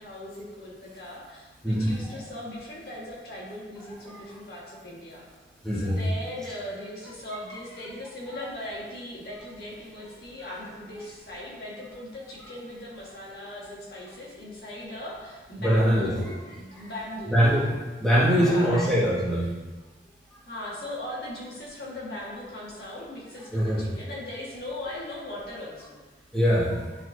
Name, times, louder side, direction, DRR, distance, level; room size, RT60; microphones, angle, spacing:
voice 1, 0.0-5.2 5.7-17.4 18.3-19.0 20.5-26.0, left 1 dB, 60° left, -6 dB, 1.7 m, -39 dB
voice 2, 1.6-2.0 4.1-4.2 5.6-6.0 15.6-16.3 16.8-16.9 17.3-17.7 18.0-19.5 23.5-23.8 26.3-26.8, equal, 5° left, -9 dB, 1.6 m, -22 dB
10.5 x 4.4 x 2.7 m, 1.3 s
head